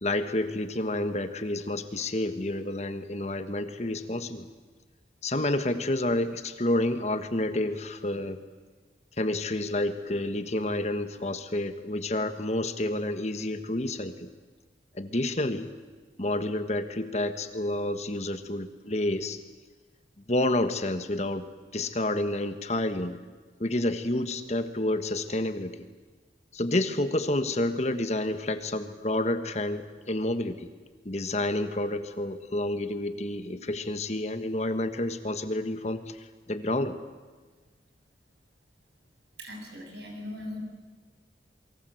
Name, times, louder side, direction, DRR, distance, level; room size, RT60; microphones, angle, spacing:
voice 1, 0.0-4.5 5.2-8.4 9.2-14.3 14.9-15.7 16.2-19.4 20.3-21.4 21.7-23.2 23.6-25.8 26.5-30.7 31.0-37.0, left 1 dB, 40° left, 9 dB, 1.5 m, -29 dB
voice 2, 39.4-40.6, left 1 dB, 70° right, 2 dB, 7.9 m, -39 dB
28.5 x 23.5 x 8.0 m, 1.4 s
head